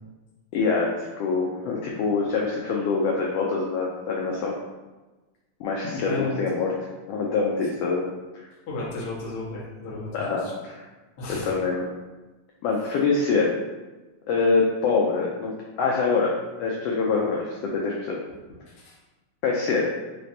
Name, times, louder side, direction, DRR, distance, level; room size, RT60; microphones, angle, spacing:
voice 1, 0.5-0.9 1.2-4.5 5.6-6.7 7.1-8.1 8.3-8.5 10.1-10.8 11.4-11.9 12.6-13.6 14.3-16.3 16.6-18.2 19.4-19.9, left 4 dB, 85° left, -2 dB, 1.4 m, -25 dB
voice 2, 5.9-6.4 8.7-10.5 11.2-11.5 18.7-18.9, left 3 dB, 55° left, -6 dB, 1.1 m, -33 dB
4.8 x 3.2 x 2.7 m, 1.2 s
omnidirectional pair, 3.3 m